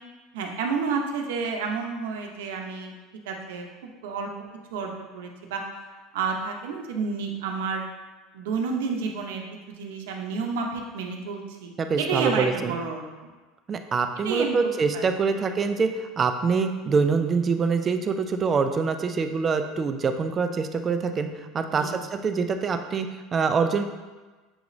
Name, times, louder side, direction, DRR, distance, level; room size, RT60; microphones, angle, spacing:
voice 1, 0.3-2.9 3.3-4.3 4.7-5.6 6.1-7.8 8.3-9.4 9.7-11.7 12.0-13.3 14.2-14.5 14.9-15.0 15.3-15.5 21.8-21.9, right 5 dB, 85° right, 2 dB, 0.7 m, -30 dB
voice 2, 11.8-12.7 13.7-21.3 21.5-23.9, right 5 dB, 30° right, 7 dB, 0.4 m, -25 dB
7.0 x 2.5 x 3.1 m, 1.3 s
supercardioid pair, 115°, 0 cm